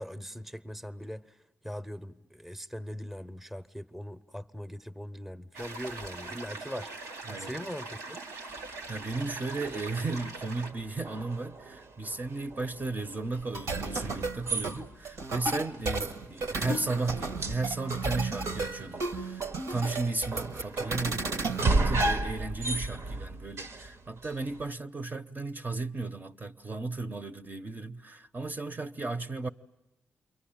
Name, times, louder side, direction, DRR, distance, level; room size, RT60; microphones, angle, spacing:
voice 1, 0.0-1.4 1.6-8.2, equal, 5° right, 0.9 m, -41 dB
sound 1, 5.5-10.7, right 3 dB, 90° right, 1.1 m, -42 dB
voice 2, 7.3-7.7 8.9-29.5, right 3 dB, 35° right, 0.9 m, -35 dB
sound 2, 8.5-24.7, right 2 dB, 55° right, 1.0 m, -36 dB
sound 3, 13.5-22.1, right 3 dB, 75° right, 1.4 m, -34 dB
28.5 x 23.0 x 8.9 m
supercardioid pair, 50°, 5 cm